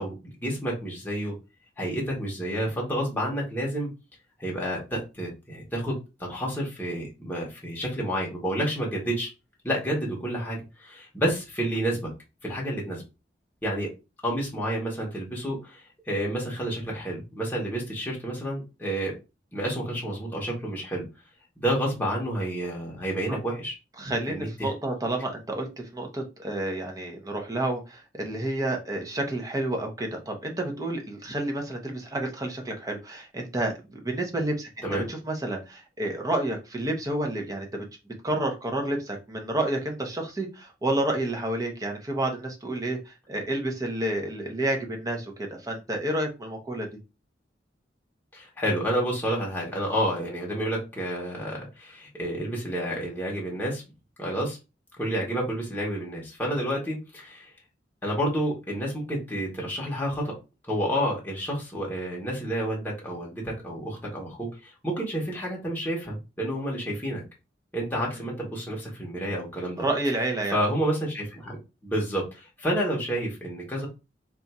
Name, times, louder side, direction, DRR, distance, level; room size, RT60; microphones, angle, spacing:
voice 1, 0.0-1.4 1.8-3.9 4.4-9.3 9.6-12.1 12.4-13.0 13.6-13.9 14.2-19.1 19.5-21.0 21.6-23.8 24.3-24.7 34.8-35.0 48.3-53.8 54.2-54.6 55.0-57.5 58.0-60.3 60.7-67.2 67.7-69.8 70.5-73.9, right 1 dB, 10° left, -3 dB, 0.9 m, -30 dB
voice 2, 24.0-25.7 25.9-37.8 38.2-46.9 69.8-70.6, right 1 dB, 20° right, 2 dB, 0.7 m, -30 dB
2.5 x 2.3 x 4.1 m, 0.28 s
head